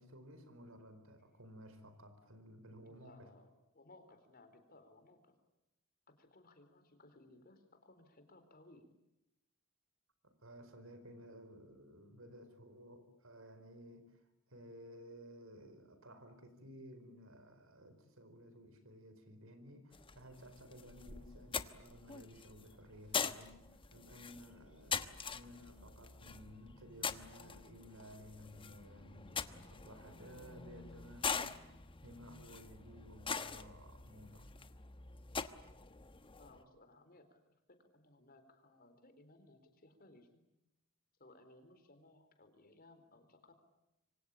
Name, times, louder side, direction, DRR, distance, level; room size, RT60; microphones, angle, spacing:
voice 1, 0.0-3.3 10.2-14.2 14.5-23.6 23.9-31.6 32.0-34.5, equal, 90° right, 10 dB, 4.8 m, -55 dB
voice 2, 2.9-5.3 6.1-8.9 36.4-37.4 37.7-40.4 41.2-43.5, left 2 dB, 45° left, 8 dB, 4.1 m, -62 dB
sound 1, 19.9-36.6, left 5 dB, 25° left, 1.1 m, -44 dB
26.5 x 25.0 x 8.6 m, 0.91 s
head